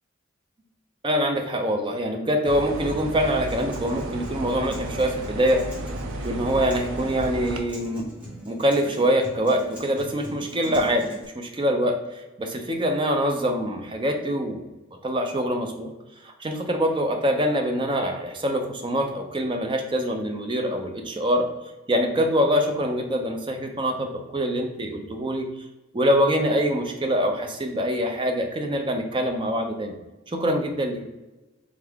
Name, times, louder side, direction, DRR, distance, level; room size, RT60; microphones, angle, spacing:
voice 1, 1.0-5.6 6.2-8.1 8.5-14.7 15.0-15.9 16.2-21.5 21.9-25.5 25.9-30.0 30.3-31.0, equal, 25° right, 4 dB, 0.5 m, -24 dB
sound 1, 2.4-7.6, right 1 dB, 80° right, 0.5 m, -33 dB
Acoustic guitar, 3.3-11.2, right 1 dB, 5° right, 1.0 m, -41 dB
3.7 x 3.5 x 3.4 m, 1.1 s
head